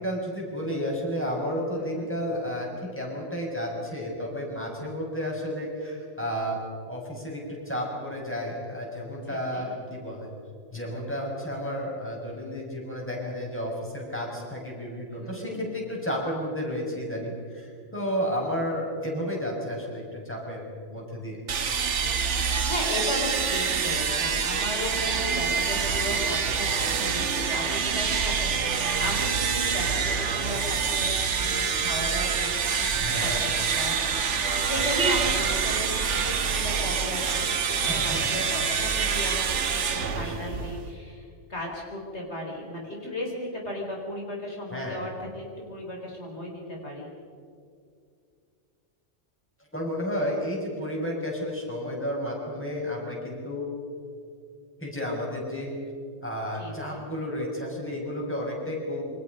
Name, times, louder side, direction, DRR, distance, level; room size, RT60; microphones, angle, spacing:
voice 1, 0.0-6.6 6.9-7.4 7.7-10.3 10.7-20.6 20.9-21.4 32.9-33.5 37.8-38.4 40.0-40.6 44.7-45.0 49.7-53.7 54.8-55.7 56.2-59.0, equal, 10° left, -2 dB, 6.4 m, -32 dB
voice 2, 1.7-2.1 9.3-9.7 15.2-15.6 21.9-37.6 37.9-47.1 56.5-57.0, left 1 dB, 65° left, -1 dB, 4.5 m, -36 dB
sound 1, 21.5-40.9, right 6 dB, 75° right, 1.5 m, -26 dB
28.0 x 25.0 x 5.4 m, 2.3 s
omnidirectional pair, 1.2 m